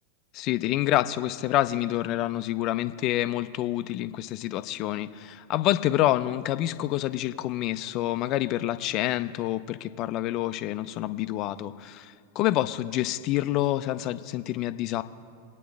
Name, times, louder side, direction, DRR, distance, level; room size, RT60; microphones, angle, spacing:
voice 1, 0.3-15.0, left 14 dB, 40° left, 13 dB, 0.5 m, -27 dB
23.5 x 9.2 x 3.5 m, 2.2 s
figure-of-eight pair, 90°, 0 cm